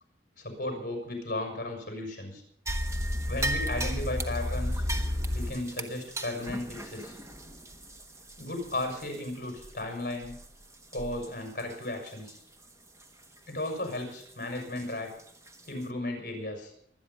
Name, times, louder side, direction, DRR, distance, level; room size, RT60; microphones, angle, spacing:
voice 1, 0.4-2.4 3.3-4.8 5.3-7.2 8.4-10.3 10.9-12.4 13.5-15.1 15.7-16.7, left 1 dB, 50° left, 3 dB, 5.9 m, -35 dB
sound 1, 2.7-9.2 9.6-9.7 10.2-10.5 10.9-11.3 11.6-11.7 12.3-12.4 14.8-14.9 15.5-15.6, equal, 15° right, 1.3 m, -33 dB
24.5 x 9.6 x 5.5 m, 0.65 s
head